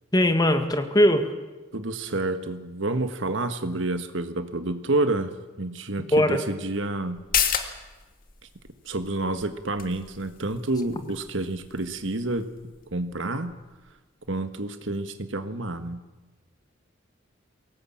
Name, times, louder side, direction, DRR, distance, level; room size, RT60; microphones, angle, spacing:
voice 1, 0.1-1.3 6.1-6.4, left 1 dB, 20° left, 7 dB, 1.9 m, -20 dB
voice 2, 1.7-7.2 7.5-7.7 8.8-12.5 12.9-13.6 14.3-16.0, right 2 dB, 70° right, 9 dB, 1.6 m, -29 dB
sound 1, 7.1-14.3 14.6-14.7, left 8 dB, 45° left, 2.0 m, -34 dB
22.5 x 18.0 x 8.8 m, 1.2 s
head